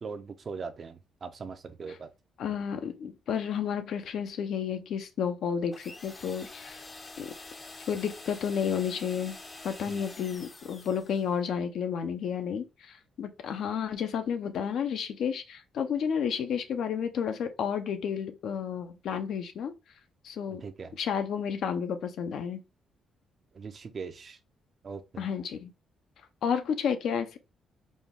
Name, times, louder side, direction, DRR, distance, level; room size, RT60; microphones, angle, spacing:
voice 1, 0.0-2.1 9.9-10.0 20.6-20.9 23.5-24.4 24.8-25.2, right 5 dB, 45° right, 0.6 m, -40 dB
voice 2, 2.4-6.8 7.2-7.3 7.9-9.3 9.6-19.7 20.2-20.6 21.0-22.6 25.2-25.7 26.4-27.4, left 7 dB, 70° left, 0.7 m, -31 dB
sound 1, 5.7-11.3, left 2 dB, 25° left, 0.6 m, -46 dB
4.2 x 2.3 x 3.6 m
cardioid pair, 90°, 0 cm